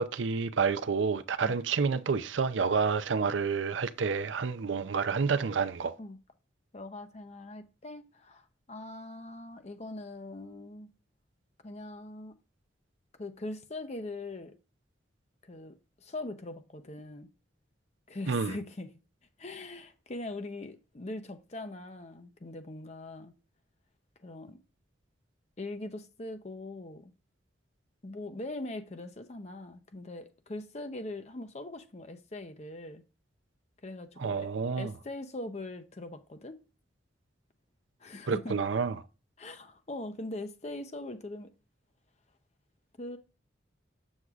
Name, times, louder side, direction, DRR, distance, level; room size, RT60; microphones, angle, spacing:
voice 1, 0.0-5.9 18.3-18.6 34.2-34.9 38.3-39.0, right 5 dB, 80° right, 0.5 m, -29 dB
voice 2, 6.7-10.9 11.6-12.4 13.2-14.5 15.4-15.8 16.0-17.3 18.1-18.9 19.4-23.3 24.2-24.6 25.6-27.1 28.0-33.0 33.8-34.5 34.8-36.6 38.0-38.6 39.4-41.5 43.0-43.2, left 2 dB, 35° left, 0.6 m, -41 dB
7.9 x 7.2 x 2.4 m
head